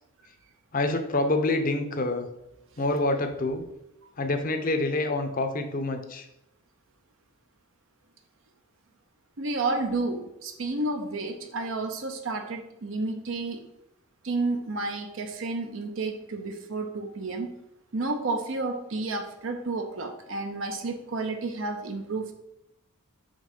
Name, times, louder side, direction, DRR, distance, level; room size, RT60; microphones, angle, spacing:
voice 1, 0.7-2.3 2.8-3.6 4.2-6.3, left 2 dB, 40° left, 6 dB, 0.6 m, -27 dB
voice 2, 9.4-13.6 14.2-17.5 17.9-22.3, right 3 dB, 60° right, 5 dB, 0.6 m, -31 dB
5.2 x 3.6 x 5.3 m, 0.84 s
head